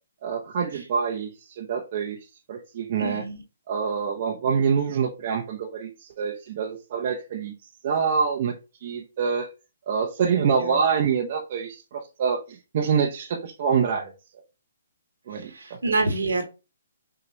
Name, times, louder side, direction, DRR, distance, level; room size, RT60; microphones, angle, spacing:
voice 1, 0.2-1.3 1.6-2.2 2.5-3.2 3.7-5.9 6.2-7.5 7.8-8.5 8.8-9.5 9.9-12.4 12.7-14.1 15.3-15.5, right 6 dB, 45° right, 1 dB, 0.8 m, -25 dB
voice 2, 3.0-3.4 10.6-10.8 15.3-16.4, right 3 dB, 80° right, 4 dB, 1.4 m, -27 dB
6.3 x 2.4 x 3.0 m, 0.30 s
figure-of-eight pair, 135°, 0 cm